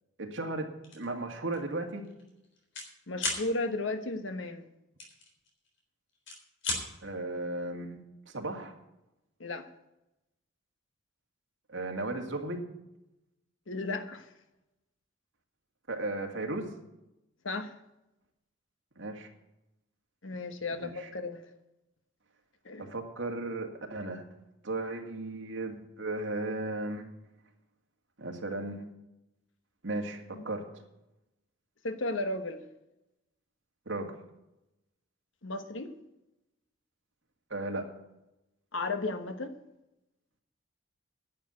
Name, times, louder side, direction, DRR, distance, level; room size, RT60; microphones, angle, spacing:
voice 1, 0.2-2.1 7.0-8.0 8.3-8.8 11.7-12.6 15.9-16.7 19.0-19.3 20.7-21.1 22.8-24.2 24.6-27.1 28.2-28.9 29.8-30.8 33.9-34.2 37.5-37.9, right 2 dB, 80° right, 2 dB, 2.1 m, -35 dB
sound 1, 0.8-1.1 1.5-1.7 2.0-2.9 3.2-3.4 5.0-5.8 6.1-6.8, left 2 dB, 70° left, 3.7 m, -34 dB
voice 2, 3.1-4.7 9.4-9.7 13.7-14.3 17.4-17.7 20.2-21.4 22.6-22.9 30.3-30.4 31.8-32.6 35.4-35.9 38.7-39.5, left 2 dB, 85° left, 9 dB, 1.3 m, -34 dB
11.0 x 7.3 x 8.5 m, 0.90 s
head